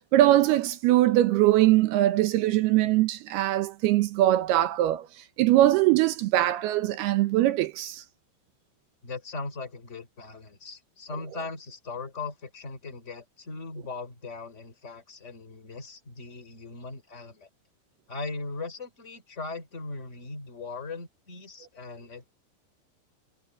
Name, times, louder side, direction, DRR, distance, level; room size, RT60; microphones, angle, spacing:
voice 1, 0.0-5.1 5.4-8.0, right 14 dB, 75° right, 2.4 m, -22 dB
voice 2, 9.0-17.5 18.1-22.3, left 3 dB, 15° left, 3.3 m, -39 dB
omnidirectional pair, 5.4 m